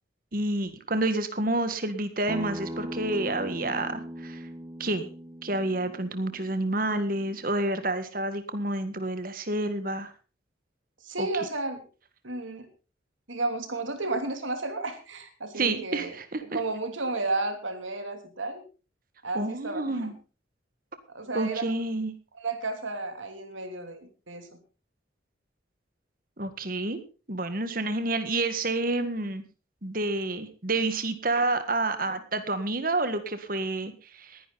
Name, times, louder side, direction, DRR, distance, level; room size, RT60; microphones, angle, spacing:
voice 1, 0.3-4.4 4.8-5.1 5.4-10.1 11.2-11.3 15.6-16.6 19.4-20.1 21.3-22.1 26.4-27.0 27.3-29.4 29.8-34.4, right 2 dB, 45° right, 10 dB, 1.8 m, -29 dB
Acoustic guitar, 2.3-7.5, equal, 20° right, 0.7 m, -39 dB
voice 2, 11.0-11.8 12.2-12.7 13.3-18.6 19.2-20.1 21.1-21.6 22.3-24.6, right 2 dB, 85° right, 7 dB, 3.0 m, -33 dB
19.5 x 11.0 x 4.1 m, 0.34 s
head